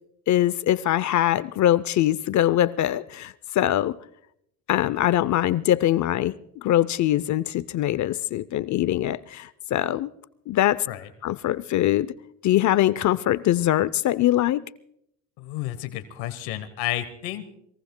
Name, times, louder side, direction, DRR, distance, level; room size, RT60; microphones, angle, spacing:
voice 1, 0.3-4.0 4.7-6.3 6.6-10.1 10.5-10.9 11.2-12.1 12.4-14.6, left 13 dB, 55° left, 0.6 m, -22 dB
voice 2, 15.4-17.5, left 13 dB, 90° left, 1.1 m, -31 dB
26.5 x 22.5 x 2.2 m
supercardioid pair, 85°, 35 cm